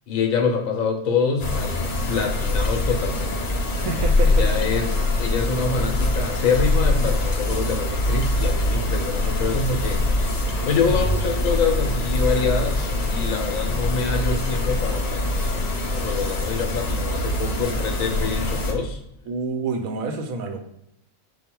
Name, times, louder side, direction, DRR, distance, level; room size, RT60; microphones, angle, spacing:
voice 1, 0.1-3.4 4.3-10.4 10.6-15.6 15.9-19.0, left 5 dB, 70° left, 3 dB, 1.1 m, -26 dB
sound 1, 1.4-18.7, left 2 dB, 45° left, 0.6 m, -23 dB
voice 2, 3.8-4.5 19.3-20.6, right 3 dB, 80° right, 4 dB, 1.1 m, -28 dB
5.1 x 2.2 x 4.4 m, 0.81 s
omnidirectional pair, 1.5 m